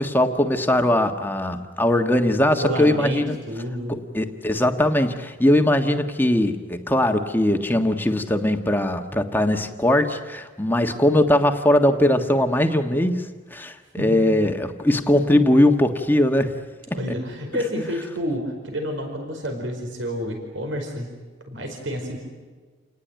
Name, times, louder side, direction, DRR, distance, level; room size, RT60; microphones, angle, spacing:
voice 1, 0.0-3.4 3.9-13.3 13.5-16.5, left 1 dB, 10° left, 5 dB, 1.4 m, -20 dB
voice 2, 2.5-3.9 14.0-14.3 16.9-21.1 21.5-22.2, equal, 75° right, 4 dB, 4.8 m, -29 dB
29.0 x 19.5 x 9.4 m, 1.4 s
head